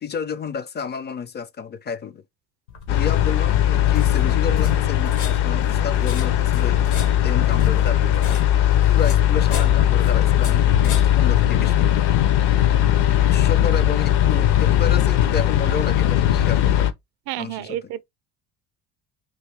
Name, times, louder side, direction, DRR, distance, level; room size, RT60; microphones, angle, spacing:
voice 1, 0.0-2.2 2.9-8.4 8.9-12.0 13.1-16.9 17.4-17.9, left 6 dB, 25° left, 0.4 m, -31 dB
sound 1, 2.7-12.0, left 5 dB, 80° left, 1.3 m, -37 dB
sound 2, 2.9-16.9, left 11 dB, 65° left, 0.8 m, -18 dB
voice 2, 17.3-18.0, right 14 dB, 60° right, 0.5 m, -30 dB
3.6 x 2.3 x 3.3 m
hypercardioid pair, 70°, 46 cm